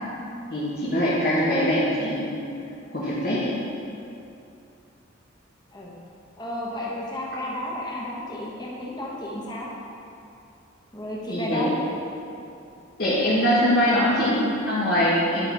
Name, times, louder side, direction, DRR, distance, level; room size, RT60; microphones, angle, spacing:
voice 1, 0.5-2.3 2.9-3.5 11.3-11.8 13.0-15.5, equal, 50° left, -9 dB, 1.2 m, -22 dB
voice 2, 6.4-9.7 10.9-11.7, left 1 dB, 20° left, -5 dB, 1.2 m, -32 dB
10.5 x 4.2 x 4.6 m, 2.7 s
head